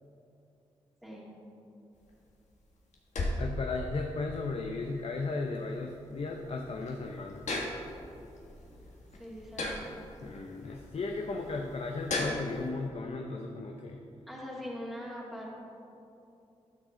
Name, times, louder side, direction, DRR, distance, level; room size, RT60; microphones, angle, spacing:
sound 1, 1.9-12.7, left 2 dB, 70° left, 1.4 m, -39 dB
voice 1, 3.4-7.4 10.2-14.0, left 3 dB, 55° left, 2 dB, 0.7 m, -35 dB
voice 2, 9.2-9.8 14.3-15.5, equal, ahead, -6 dB, 2.2 m, -41 dB
11.5 x 6.3 x 3.8 m, 2.8 s
supercardioid pair, 40°, 12 cm